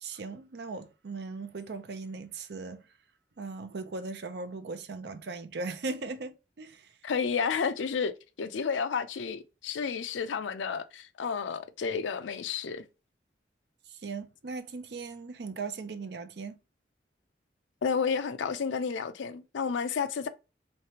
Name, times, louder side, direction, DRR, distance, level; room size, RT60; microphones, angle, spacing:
voice 1, 0.0-2.9 3.4-6.9 13.9-16.6, right 3 dB, 60° right, 0.5 m, -38 dB
voice 2, 7.0-8.1 8.4-12.9 17.8-20.3, left 6 dB, 80° left, 0.4 m, -31 dB
3.2 x 3.2 x 2.8 m
head